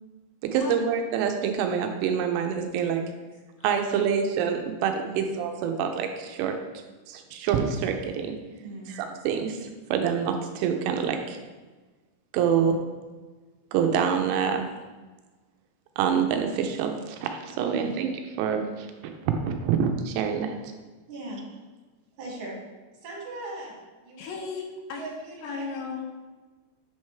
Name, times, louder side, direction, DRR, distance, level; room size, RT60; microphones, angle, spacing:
voice 1, 0.4-3.1 3.6-6.6 7.1-8.4 8.9-11.4 12.3-12.8 13.7-14.7 16.0-18.1 18.4-18.9 19.3-20.6, right 7 dB, 85° right, 5 dB, 2.5 m, -26 dB
voice 2, 8.6-9.0 17.8-17.9 21.1-21.4 22.2-22.6 22.9-23.7 24.0-24.4 24.9-25.7, right 2 dB, 60° right, -3 dB, 2.5 m, -38 dB
voice 3, 24.2-25.0 25.4-26.3, left 5 dB, 80° left, 3 dB, 2.5 m, -35 dB
8.3 x 6.4 x 3.4 m, 1.3 s
omnidirectional pair, 5.5 m